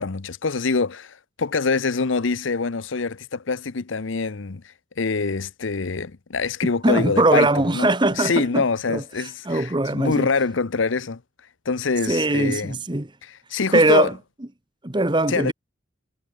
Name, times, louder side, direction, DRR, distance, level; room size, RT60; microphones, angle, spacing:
voice 1, 0.0-11.2 11.6-12.8 13.2-14.1 15.3-15.5, left 4 dB, 70° left, 0.8 m, -25 dB
voice 2, 6.8-9.0 9.4-10.3 12.1-13.1 13.7-14.1 14.8-15.5, right 2 dB, 25° right, 1.2 m, -20 dB
head